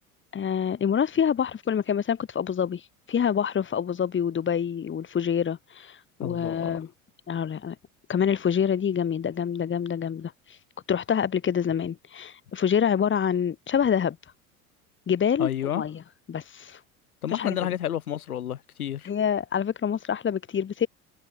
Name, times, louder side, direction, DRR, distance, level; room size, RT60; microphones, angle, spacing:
voice 1, 0.3-2.8 3.1-6.9 7.3-7.8 8.1-10.3 10.9-14.2 15.1-15.5 15.8-16.0 16.3-16.8 17.3-17.6 19.0-20.9, left 8 dB, 25° left, 2.1 m, -26 dB
voice 2, 6.2-6.8 15.4-15.8 17.2-19.1, left 10 dB, 80° left, 3.0 m, -30 dB
hypercardioid pair, 75°, 43 cm